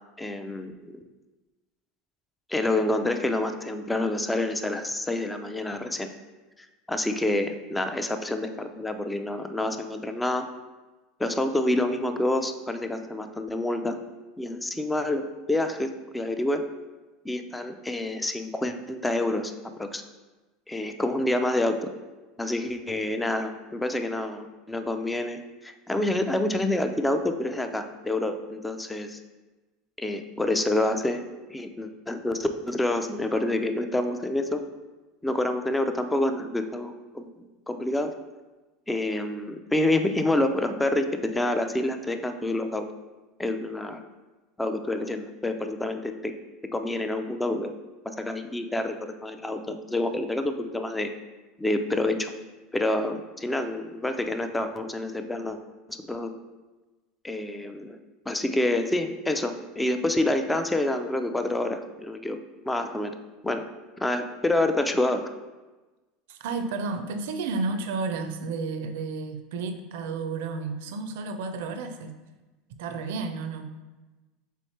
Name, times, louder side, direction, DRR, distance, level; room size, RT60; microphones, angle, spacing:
voice 1, 0.2-0.7 2.5-6.1 6.9-10.4 11.2-14.0 14.4-16.6 17.2-19.5 19.8-20.0 20.7-21.9 22.4-29.2 30.0-31.2 31.5-34.6 35.2-37.4 37.7-38.1 38.9-42.9 43.4-44.0 44.6-46.3 46.7-47.7 48.0-51.1 51.6-52.3 52.7-55.6 55.9-56.3 57.2-58.0 58.3-62.4 62.6-63.1 63.4-63.6 64.0-65.2, left 1 dB, 10° left, 7 dB, 0.4 m, -27 dB
voice 2, 66.3-72.2 72.8-73.7, right 4 dB, 80° right, 8 dB, 0.4 m, -32 dB
3.5 x 3.1 x 4.2 m, 1.2 s
supercardioid pair, 115°, 0 cm